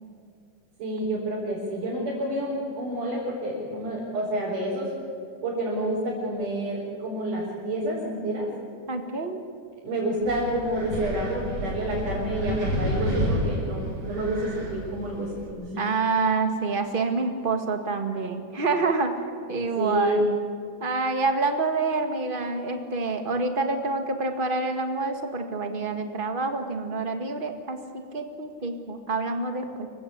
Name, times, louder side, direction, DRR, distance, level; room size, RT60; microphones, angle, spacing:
voice 1, 0.8-4.9 5.4-8.5 9.8-15.3 15.6-15.8 19.8-20.2, right 1 dB, 80° right, -6 dB, 6.3 m, -29 dB
voice 2, 8.9-9.4 15.8-19.2 19.5-20.2 20.8-29.9, right 3 dB, 25° right, 5 dB, 1.3 m, -27 dB
Wind, 10.2-15.5, right 1 dB, 50° right, 5.7 m, -30 dB
26.5 x 15.5 x 8.6 m, 2.4 s
omnidirectional pair, 3.6 m